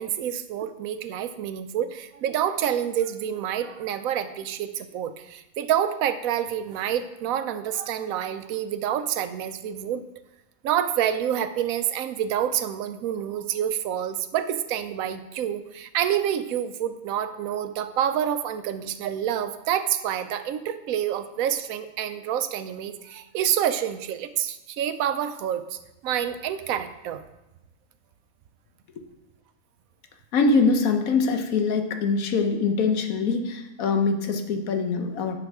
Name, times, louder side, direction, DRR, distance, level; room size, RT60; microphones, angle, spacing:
voice 1, 0.0-10.0 10.6-25.8 26.0-27.2, right 10 dB, 85° right, 11 dB, 1.0 m, -28 dB
voice 2, 30.3-35.4, left 4 dB, 85° left, 6 dB, 1.3 m, -23 dB
10.0 x 5.7 x 3.5 m, 0.94 s
omnidirectional pair, 1.4 m